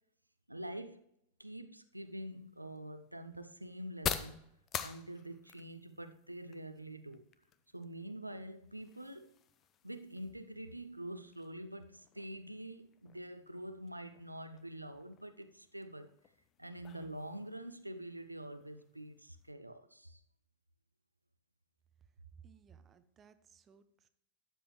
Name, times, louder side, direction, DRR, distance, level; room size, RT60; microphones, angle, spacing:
voice 1, 0.5-1.0 1.4-4.4 4.8-7.3 7.7-9.3 9.8-16.1 16.6-20.2, right 1 dB, 85° right, 0.5 m, -46 dB
sound 1, 1.9-19.5, left 9 dB, 30° left, 0.7 m, -48 dB
voice 2, 22.0-24.1, right 7 dB, 25° right, 0.7 m, -60 dB
12.5 x 7.8 x 3.1 m
figure-of-eight pair, 90°, 0 cm